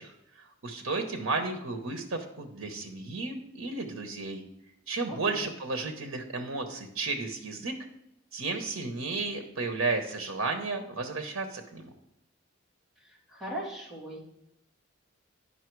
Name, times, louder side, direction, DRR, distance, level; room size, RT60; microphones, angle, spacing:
voice 1, 0.0-4.4 4.9-7.7 8.3-11.9, right 3 dB, 85° right, 5 dB, 1.0 m, -33 dB
voice 2, 5.1-5.4 13.3-14.2, right 1 dB, ahead, -6 dB, 2.6 m, -38 dB
10.0 x 5.6 x 4.6 m, 0.81 s
head